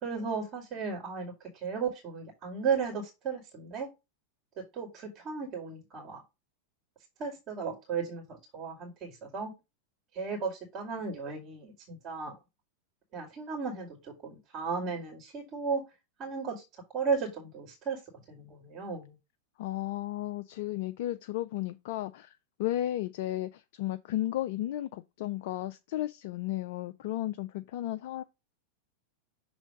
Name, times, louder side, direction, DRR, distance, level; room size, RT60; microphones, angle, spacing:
voice 1, 0.0-3.9 4.7-6.2 7.2-9.5 10.1-12.3 13.1-15.8 16.2-16.6 16.9-18.0 18.3-19.2, right 5 dB, 35° right, 2.2 m, -35 dB
voice 2, 19.6-28.2, left 14 dB, 50° left, 0.3 m, -34 dB
6.2 x 3.3 x 4.9 m
figure-of-eight pair, 90°, 0 cm